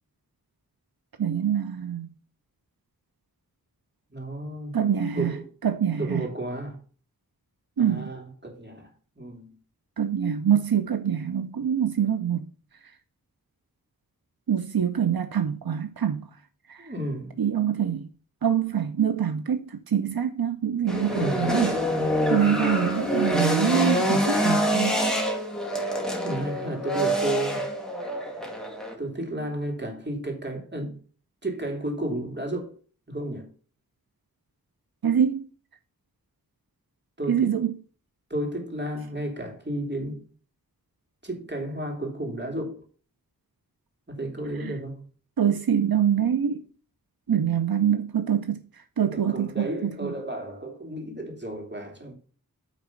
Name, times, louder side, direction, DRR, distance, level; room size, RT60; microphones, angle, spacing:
voice 1, 1.2-2.1 4.7-5.3 5.6-6.2 7.8-8.1 10.0-12.5 14.5-16.3 16.7-16.9 17.4-18.1 18.4-21.8 22.3-25.0 35.0-35.5 37.3-37.7 44.6-44.7 45.4-46.6 47.3-48.6 49.0-50.1, right 8 dB, 85° right, 0.6 m, -25 dB
voice 2, 4.1-4.8 5.1-5.5 5.9-6.8 7.8-8.9 9.2-9.5 16.8-17.4 21.0-21.5 26.2-27.7 29.0-31.0 31.4-32.7 33.1-33.5 37.2-37.6 38.3-40.2 41.2-42.8 44.1-45.0 49.1-52.1, right 1 dB, 30° right, 3.0 m, -32 dB
sound 1, 20.9-28.9, equal, ahead, 2.1 m, -26 dB
9.1 x 4.2 x 5.9 m
wide cardioid pair, 50°, 35 cm